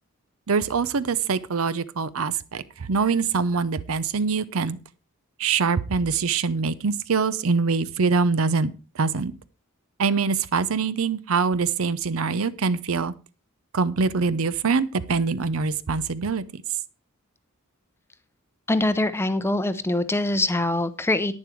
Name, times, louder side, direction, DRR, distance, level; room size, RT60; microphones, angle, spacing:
voice 1, 0.5-4.8 5.4-9.3 10.0-13.1 13.7-16.6, right 5 dB, 65° right, 16 dB, 0.6 m, -24 dB
voice 2, 18.7-21.4, left 2 dB, 10° left, 12 dB, 0.6 m, -23 dB
10.5 x 9.4 x 4.5 m, 0.34 s
head